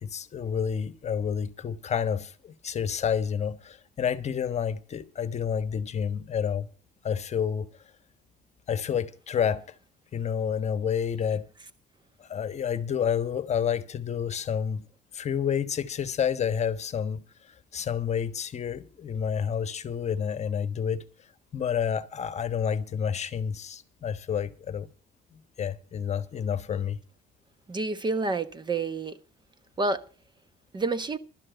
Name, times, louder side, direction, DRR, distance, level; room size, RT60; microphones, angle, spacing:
voice 1, 0.0-6.7 7.0-7.7 8.7-9.6 10.1-11.5 12.3-14.8 15.1-17.2 17.7-21.0 21.5-24.9 25.6-27.0, left 7 dB, 40° left, 1.2 m, -29 dB
voice 2, 27.7-29.2 29.8-30.0 30.7-31.2, right 3 dB, 25° right, 1.1 m, -28 dB
12.5 x 6.4 x 9.1 m
cardioid pair, 110°, 17 cm